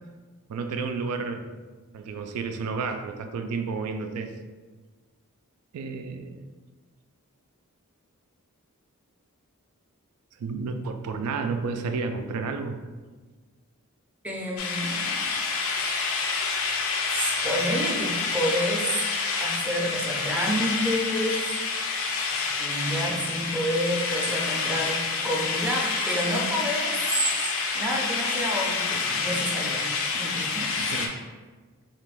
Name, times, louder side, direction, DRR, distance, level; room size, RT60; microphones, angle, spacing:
voice 1, 0.5-1.5 1.9-4.3 5.7-6.4 10.4-12.8 30.8-31.2, right 4 dB, 80° right, 9 dB, 0.3 m, -31 dB
voice 2, 14.2-15.3 15.7-16.4 17.1-19.0 19.4-21.5 22.3-29.9 30.1-30.8, equal, 5° right, -2 dB, 0.4 m, -29 dB
sound 1, 14.6-31.1, left 4 dB, 60° left, 0.4 m, -28 dB
2.9 x 2.4 x 3.4 m, 1.3 s
head